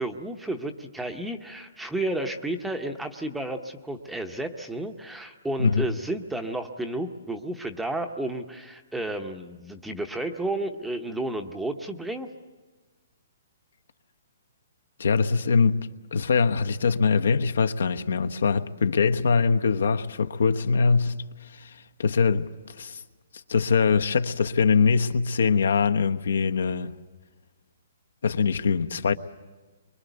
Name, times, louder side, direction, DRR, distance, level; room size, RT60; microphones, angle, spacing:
voice 1, 0.0-12.3, right 1 dB, ahead, 0.8 m, -32 dB
voice 2, 15.0-15.8 16.1-21.1 21.5-21.7 22.0-22.5 22.8-23.0 23.5-26.9 28.2-29.1, left 5 dB, 75° left, 1.1 m, -22 dB
24.5 x 23.0 x 8.1 m
hypercardioid pair, 180°, 0 cm